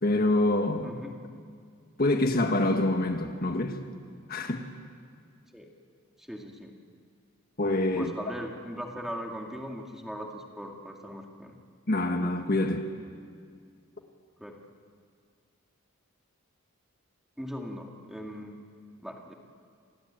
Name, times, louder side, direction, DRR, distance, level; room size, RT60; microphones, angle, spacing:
voice 1, 0.0-0.9 2.0-3.8 4.3-4.6 7.6-8.1 11.9-12.9, left 2 dB, 45° left, 5 dB, 1.6 m, -26 dB
voice 2, 0.8-1.2 5.5-5.7 6.2-6.8 8.0-11.5 14.4-14.5 17.4-18.6 19.0-19.3, equal, ahead, 1 dB, 2.2 m, -39 dB
28.0 x 20.0 x 9.0 m, 2.1 s
head